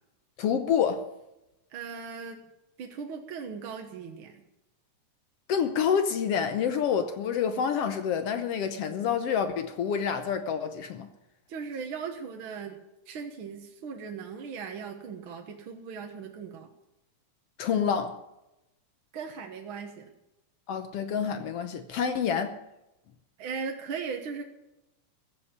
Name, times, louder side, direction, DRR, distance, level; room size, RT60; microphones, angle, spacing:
voice 1, 0.4-1.1 5.5-11.1 17.6-18.2 20.7-22.6, left 7 dB, 70° left, 1.5 m, -28 dB
voice 2, 1.7-2.4 2.8-4.4 11.5-12.8 13.1-16.7 19.1-20.1 23.4-24.4, right 5 dB, 55° right, 1.5 m, -38 dB
15.5 x 7.7 x 9.8 m
omnidirectional pair, 3.7 m